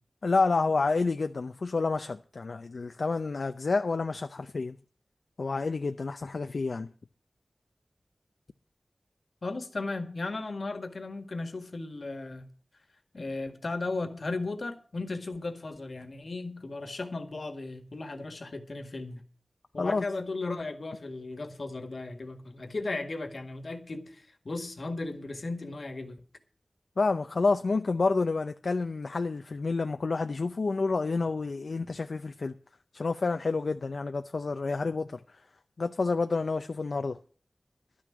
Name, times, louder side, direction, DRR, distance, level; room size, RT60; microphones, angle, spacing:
voice 1, 0.2-4.8 5.4-6.9 19.8-20.1 27.0-32.5 32.9-35.2 35.8-37.2, left 3 dB, 85° left, 0.6 m, -29 dB
voice 2, 9.4-12.4 13.1-19.2 19.7-26.2, left 3 dB, 70° left, 1.7 m, -36 dB
12.0 x 6.4 x 9.5 m
wide cardioid pair, 75°, 0 cm